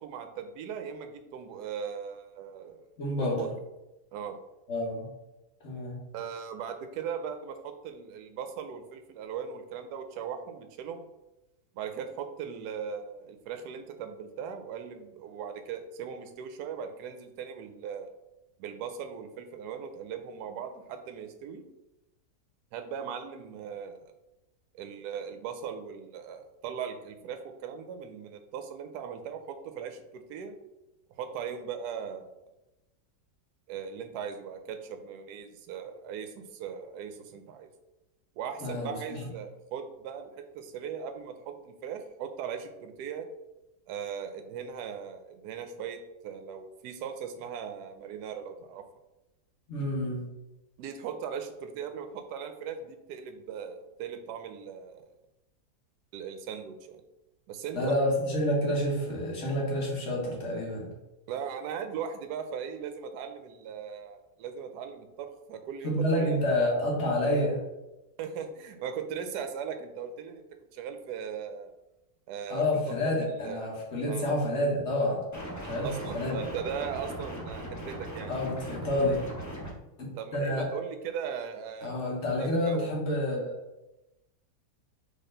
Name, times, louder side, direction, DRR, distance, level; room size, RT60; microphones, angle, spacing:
voice 1, 0.0-2.8 3.2-3.5 4.1-4.4 6.1-11.1 11.7-18.1 18.6-21.7 22.7-24.0 24.7-30.6 31.2-32.3 33.7-37.7 38.4-43.3 43.9-48.8 50.8-55.1 56.1-57.0 57.5-57.9 61.3-66.4 68.2-70.4 70.7-71.7 72.3-73.6 74.1-74.3 75.8-78.3 80.2-82.9, right 7 dB, 75° right, 7 dB, 1.1 m, -39 dB
voice 2, 3.0-3.5 4.7-5.1 5.6-6.0 38.6-39.2 49.7-50.2 57.7-60.9 65.8-67.6 72.5-75.3 75.5-75.9 76.1-76.4 78.3-79.2 80.3-80.7 81.8-83.5, left 1 dB, 45° left, -2 dB, 1.4 m, -28 dB
sound 1, 75.3-79.7, right 1 dB, 20° left, 0.5 m, -39 dB
4.1 x 3.3 x 3.8 m, 0.96 s
omnidirectional pair, 1.8 m